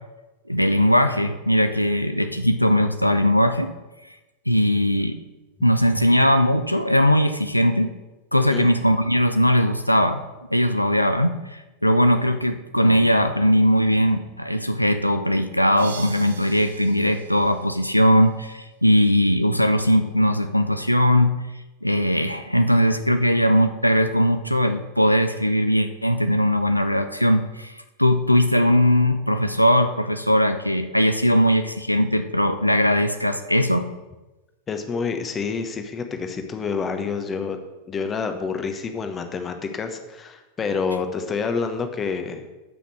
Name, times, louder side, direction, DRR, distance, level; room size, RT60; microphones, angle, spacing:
voice 1, 0.5-3.7 4.5-5.2 5.6-7.9 8.3-10.2 10.5-21.4 21.8-33.9, equal, 90° left, 8 dB, 0.5 m, -19 dB
sound 1, 15.8-18.5, right 5 dB, 70° right, 1.0 m, -43 dB
voice 2, 34.7-37.6 37.9-42.5, left 5 dB, 20° left, 6 dB, 1.2 m, -28 dB
11.0 x 5.8 x 6.2 m, 1.1 s
figure-of-eight pair, 90°, 0 cm